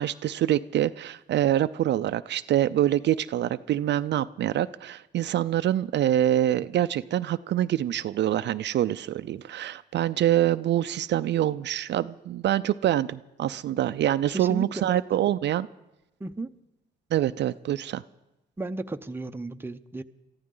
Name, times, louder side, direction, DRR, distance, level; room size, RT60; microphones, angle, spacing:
voice 1, 0.0-15.7 17.1-18.0, right 12 dB, 60° right, 13 dB, 0.5 m, -25 dB
voice 2, 14.3-15.0 16.2-16.5 18.6-20.0, right 2 dB, 10° right, 8 dB, 0.7 m, -34 dB
23.5 x 14.5 x 3.8 m, 0.93 s
cardioid pair, 90°, 20 cm